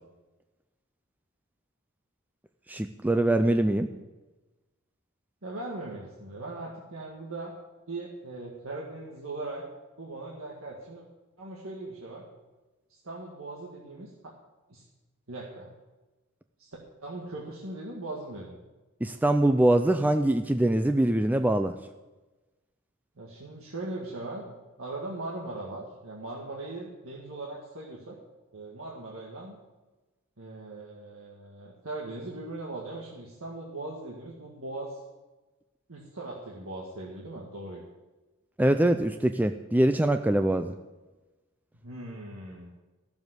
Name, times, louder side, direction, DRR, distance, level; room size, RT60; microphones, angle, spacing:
voice 1, 2.7-3.9 19.0-21.8 38.6-40.7, right 1 dB, 10° right, 7 dB, 0.4 m, -23 dB
voice 2, 3.7-4.0 5.4-7.5 7.9-9.6 10.0-11.0 11.4-12.2 12.9-14.3 14.7-14.8 15.3-15.7 16.6-18.6 23.2-28.2 28.5-29.6 30.4-35.0 35.9-37.8 41.8-42.7, right 2 dB, 70° right, -3 dB, 1.8 m, -39 dB
14.0 x 7.1 x 8.0 m, 1.1 s
head